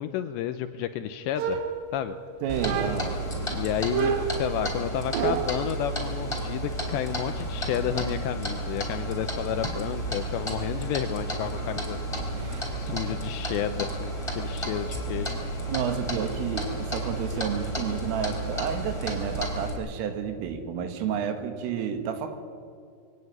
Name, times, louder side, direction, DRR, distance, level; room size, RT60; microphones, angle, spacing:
voice 1, 0.0-1.6 1.9-2.2 3.5-12.0 12.7-15.4, left 10 dB, 80° left, 10 dB, 2.6 m, -31 dB
sound 1, 1.3-2.2 2.6-3.2 3.9-5.7, right 7 dB, 65° right, 3.5 m, -29 dB
voice 2, 2.4-3.2 12.3-13.0 15.7-22.4, right 7 dB, 85° right, 7 dB, 4.3 m, -31 dB
Clock, 2.5-19.7, right 1 dB, 5° left, 3.2 m, -32 dB
22.5 x 17.5 x 9.5 m, 2.4 s
omnidirectional pair, 5.7 m